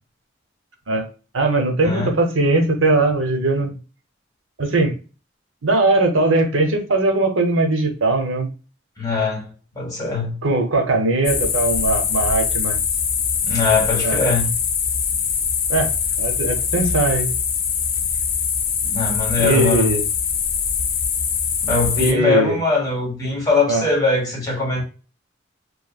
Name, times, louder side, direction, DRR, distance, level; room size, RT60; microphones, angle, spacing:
voice 1, 1.3-3.8 4.6-4.9 5.6-8.5 10.4-12.8 14.0-14.2 15.7-15.9 16.2-17.3 19.4-20.0 22.0-22.6 23.7-23.8, right 2 dB, 85° right, 0.7 m, -19 dB
voice 2, 9.0-9.5 9.8-10.4 13.4-14.5 18.8-19.9 21.6-24.8, left 3 dB, 20° left, 1.1 m, -21 dB
sound 1, 11.2-22.1, left 6 dB, 45° left, 0.4 m, -22 dB
3.0 x 2.2 x 2.3 m
head